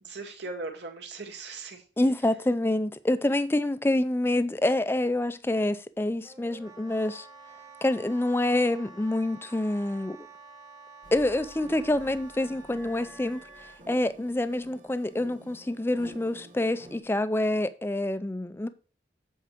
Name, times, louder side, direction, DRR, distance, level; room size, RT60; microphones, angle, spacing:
voice 1, 0.0-1.8, right 3 dB, 75° right, 2.0 m, -39 dB
voice 2, 2.0-7.3 7.8-10.2 11.1-13.4 13.9-18.7, left 1 dB, 15° left, 0.4 m, -27 dB
Wind instrument woodwind instrument, 6.2-13.8, right 3 dB, 20° right, 1.2 m, -49 dB
Tension orchestra chords., 11.0-17.0, right 2 dB, 45° right, 1.8 m, -51 dB
8.2 x 4.7 x 6.0 m
head